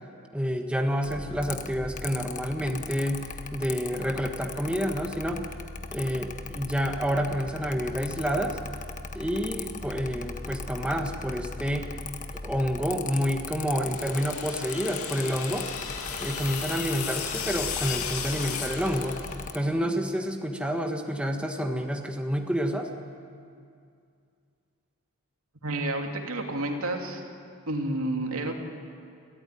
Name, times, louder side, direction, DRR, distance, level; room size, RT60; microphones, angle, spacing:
voice 1, 0.3-5.5 5.9-8.6 9.1-11.9 12.3-15.7 16.2-19.2 19.5-22.9, equal, 5° right, 3 dB, 1.4 m, -29 dB
Mechanical fan, 1.0-19.6, left 4 dB, 35° left, 1.2 m, -39 dB
sound 1, 13.8-19.6, left 7 dB, 90° left, 2.3 m, -35 dB
voice 2, 25.6-27.2 27.7-28.5, right 1 dB, 85° right, 2 dB, 2.7 m, -30 dB
30.0 x 13.5 x 9.9 m, 2.4 s
head